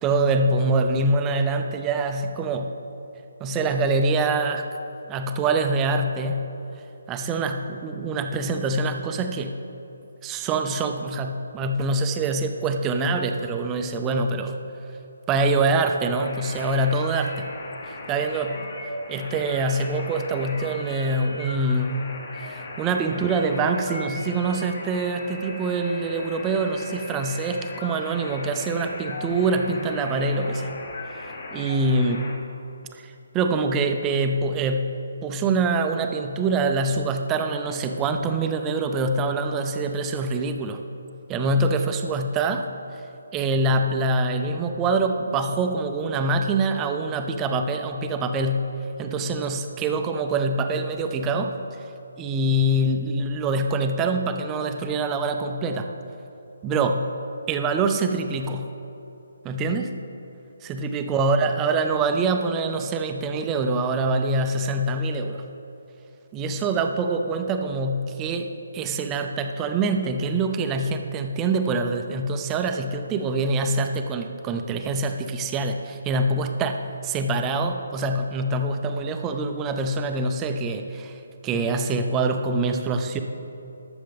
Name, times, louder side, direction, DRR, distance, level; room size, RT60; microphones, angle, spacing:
voice 1, 0.0-2.8 3.4-4.8 5.1-6.5 7.1-9.6 10.2-14.6 15.3-17.5 17.9-18.6 19.1-30.7 31.2-32.3 32.9-40.8 41.3-42.7 43.3-48.7 49.0-51.5 52.2-55.9 56.6-57.1 57.5-58.7 59.4-59.9 60.6-65.4 66.3-83.2, right 3 dB, 15° right, 6 dB, 0.6 m, -25 dB
sound 1, 16.2-32.3, left 2 dB, 55° left, 2.3 m, -37 dB
20.0 x 7.0 x 3.5 m, 2.9 s
hypercardioid pair, 165°, 0 cm